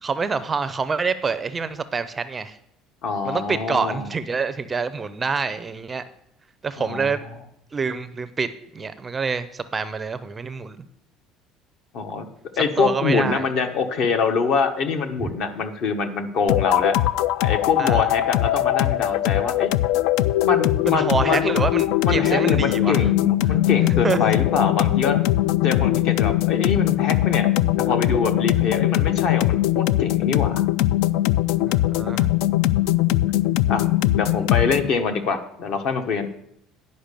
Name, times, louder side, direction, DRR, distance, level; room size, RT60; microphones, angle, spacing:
voice 1, 0.0-2.6 3.2-6.0 6.6-7.2 7.7-10.8 12.5-13.5 15.2-15.3 17.8-18.1 20.9-23.1 23.5-23.6 24.0-24.2 31.7-32.3, right 5 dB, 15° right, 12 dB, 0.4 m, -26 dB
voice 2, 3.0-4.1 6.8-7.1 11.9-12.3 12.6-17.0 17.4-20.0 20.4-21.5 22.0-25.2 25.6-27.5 27.8-30.6 33.7-33.8 34.1-36.3, left 5 dB, 50° left, 8 dB, 1.0 m, -24 dB
sound 1, 16.5-34.9, left 15 dB, 75° left, 0.3 m, -21 dB
10.0 x 5.4 x 6.7 m, 0.75 s
cardioid pair, 160°, 0 cm